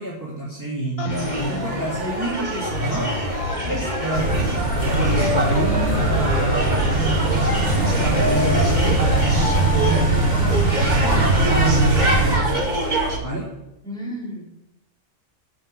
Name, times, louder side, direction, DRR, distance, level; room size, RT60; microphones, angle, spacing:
voice 1, 0.0-3.1 3.6-4.5 4.8-11.2 11.5-12.9 13.2-13.5, right 2 dB, 15° right, -6 dB, 2.9 m, -29 dB
sound 1, 1.0-2.3 2.6-4.3 4.7-9.9, left 3 dB, 30° left, 1.1 m, -31 dB
sound 2, 1.1-13.2, right 1 dB, 35° right, 2.4 m, -25 dB
sound 3, 4.1-12.4, right 2 dB, 75° right, 4.9 m, -20 dB
voice 2, 13.8-14.5, equal, 5° left, -6 dB, 5.0 m, -33 dB
9.6 x 8.3 x 9.2 m, 0.92 s
omnidirectional pair, 1.3 m